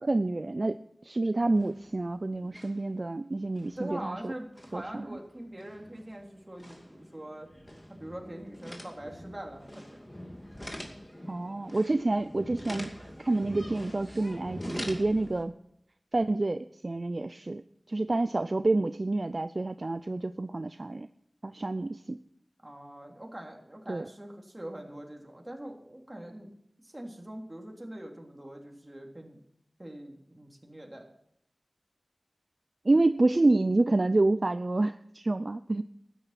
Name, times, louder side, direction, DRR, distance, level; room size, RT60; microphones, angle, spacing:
voice 1, 0.0-4.3 4.7-5.0 11.3-15.5 16.1-17.6 17.9-21.1 21.4-22.2 23.9-24.0 32.9-35.8, right 2 dB, 50° right, 12 dB, 0.4 m, -28 dB
sound 1, 1.4-2.1 2.3-2.9 3.3-15.4, equal, 25° left, 2.4 m, -44 dB
voice 2, 3.8-7.5 7.9-10.1 22.6-26.5 26.8-29.4 29.8-31.1, right 1 dB, 25° right, 1 dB, 3.2 m, -43 dB
12.5 x 10.0 x 5.8 m, 0.74 s
wide cardioid pair, 40°, 0 cm